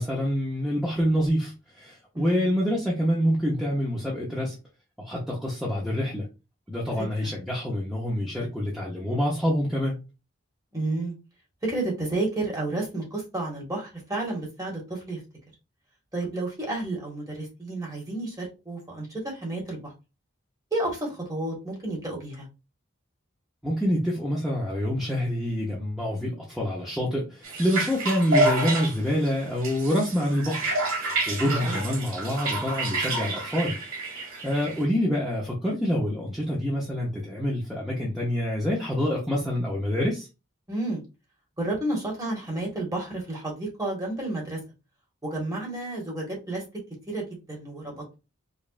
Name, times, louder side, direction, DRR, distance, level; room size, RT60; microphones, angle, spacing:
voice 1, 0.0-4.6 5.0-6.3 6.7-10.0 23.6-30.7 31.0-33.8 34.1-40.3, equal, ahead, -5 dB, 0.7 m, -26 dB
voice 2, 2.1-2.5 7.2-7.3 10.7-11.1 11.6-15.2 16.1-19.9 20.7-22.5 31.5-31.8 40.7-41.0 41.6-44.6 45.2-46.6 47.1-48.2, right 2 dB, 15° right, -3 dB, 1.5 m, -31 dB
sound 1, 27.4-34.8, right 2 dB, 85° right, 1.6 m, -29 dB
5.2 x 2.5 x 2.4 m, 0.28 s
head